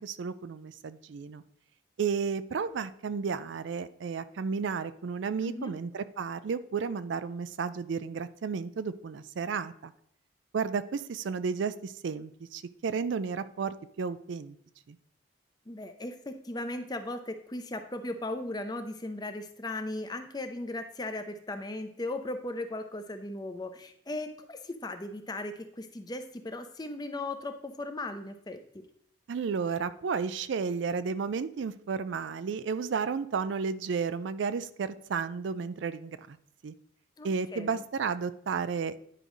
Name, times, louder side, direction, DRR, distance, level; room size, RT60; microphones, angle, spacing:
voice 1, 0.0-1.4 2.0-9.9 10.5-14.6 14.9-15.0 29.3-36.4 36.6-36.7 37.2-39.1, right 5 dB, 70° right, 14 dB, 0.4 m, -33 dB
voice 2, 5.4-5.7 15.7-28.8 37.2-37.8, left 2 dB, 20° left, 7 dB, 0.6 m, -37 dB
9.9 x 5.1 x 3.1 m, 0.69 s
head